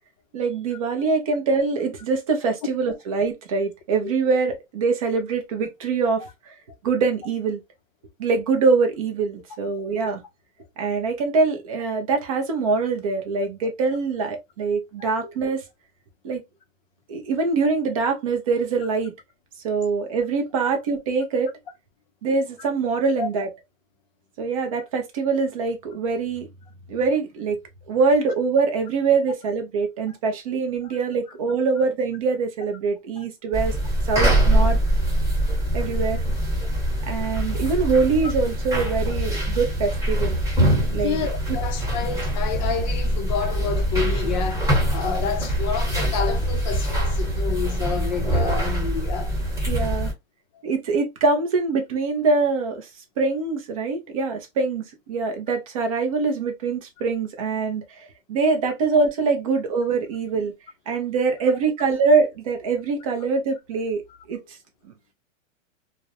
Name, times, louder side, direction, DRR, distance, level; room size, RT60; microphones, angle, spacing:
voice 1, 0.3-6.2 6.8-7.6 8.2-10.2 10.8-15.6 16.2-16.4 17.1-19.1 19.6-21.5 22.2-23.5 24.4-26.5 26.9-27.6 27.9-33.8 34.1-34.8 35.7-36.2 37.1-40.4 40.9-41.3 49.7-50.1 50.6-52.9 53.2-57.8 58.3-60.5 60.9-64.4, right 4 dB, 30° right, 0.4 m, -23 dB
voice 2, 15.0-15.3 20.6-20.7 23.2-23.3 30.1-30.2 33.2-33.3 36.6-36.7 40.9-49.3 50.5-50.6 60.9-61.0, left 6 dB, 35° left, 0.5 m, -29 dB
sound 1, 33.5-50.1, right 1 dB, 5° right, 1.0 m, -23 dB
2.3 x 2.0 x 2.6 m
hypercardioid pair, 140°, 40 cm